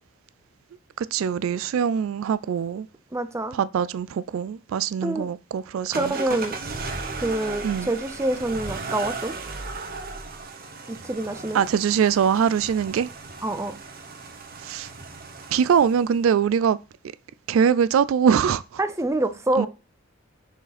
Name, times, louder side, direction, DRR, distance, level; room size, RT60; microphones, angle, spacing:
voice 1, 1.0-2.9 3.5-6.1 7.6-7.9 11.5-13.1 14.6-14.9 15.5-16.8 17.5-18.8 19.6-19.7, right 7 dB, 70° right, 0.3 m, -22 dB
voice 2, 3.1-3.6 5.0-5.3 5.9-6.6 7.2-9.3 10.9-11.6 13.4-13.8 18.8-19.7, right 1 dB, 15° right, 0.7 m, -26 dB
sound 1, 5.9-16.2, right 3 dB, 45° right, 1.3 m, -36 dB
6.6 x 5.0 x 4.1 m
head